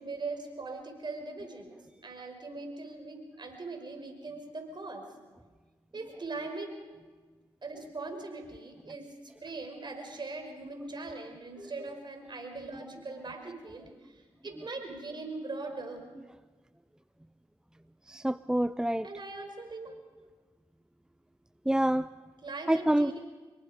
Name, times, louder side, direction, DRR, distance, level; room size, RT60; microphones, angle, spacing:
voice 1, 0.0-1.7 2.0-5.1 5.9-6.7 7.6-9.1 9.4-16.1 19.0-19.9 22.4-23.2, right 3 dB, 45° right, 5 dB, 5.5 m, -40 dB
voice 2, 18.1-19.1 21.7-22.1 22.7-23.1, right 1 dB, 5° right, 15 dB, 0.6 m, -27 dB
25.0 x 22.5 x 5.2 m, 1.4 s
supercardioid pair, 40°, 11 cm